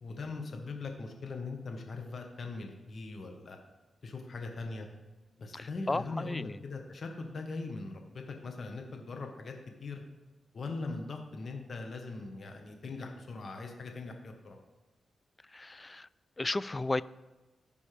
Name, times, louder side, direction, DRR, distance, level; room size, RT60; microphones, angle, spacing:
voice 1, 0.0-3.6 4.0-4.9 5.4-9.5 9.8-10.0 10.5-14.6, left 3 dB, 60° left, 3 dB, 1.2 m, -40 dB
voice 2, 5.5-6.6 15.5-16.1 16.4-17.0, left 2 dB, 30° left, 18 dB, 0.3 m, -34 dB
14.5 x 5.4 x 3.4 m, 1.2 s
cardioid pair, 60°, 0 cm